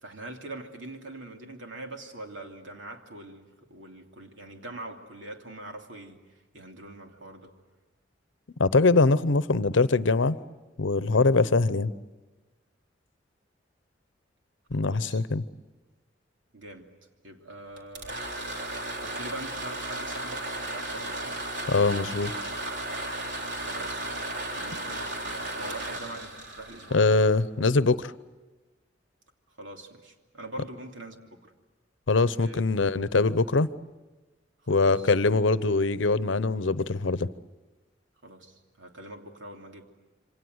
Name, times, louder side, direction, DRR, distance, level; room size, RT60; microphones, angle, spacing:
voice 1, 0.0-7.5 14.8-15.2 16.5-16.9 17.2-18.2 19.0-21.4 23.6-27.1 29.6-31.5 32.4-32.6 34.6-35.1 38.2-39.8, right 2 dB, 85° right, 2 dB, 3.0 m, -43 dB
voice 2, 8.6-10.4 10.8-11.9 14.7-15.4 21.7-22.3 26.9-28.1 32.1-33.7 34.7-37.3, left 3 dB, 85° left, 16 dB, 0.8 m, -23 dB
sound 1, 17.8-27.6, right 1 dB, 65° right, 3.7 m, -35 dB
27.5 x 25.5 x 8.0 m, 1.2 s
head